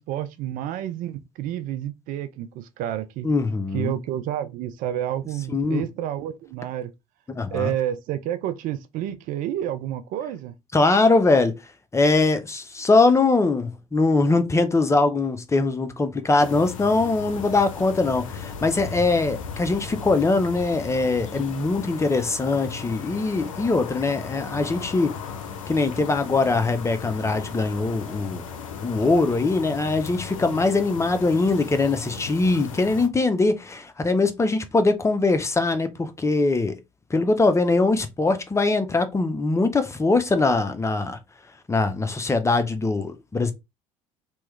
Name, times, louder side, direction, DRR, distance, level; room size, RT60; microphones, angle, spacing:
voice 1, 0.0-3.3 3.7-6.9 7.5-10.5, right 11 dB, 55° right, 0.4 m, -29 dB
voice 2, 3.2-3.9 5.5-5.8 7.3-7.7 10.7-11.5 11.9-25.1 25.7-28.4 28.8-36.8 37.1-41.2 41.7-43.5, left 3 dB, 15° left, 0.6 m, -22 dB
sound 1, 16.4-33.1, left 6 dB, 80° left, 0.5 m, -36 dB
3.0 x 2.3 x 3.1 m
hypercardioid pair, 60°, 17 cm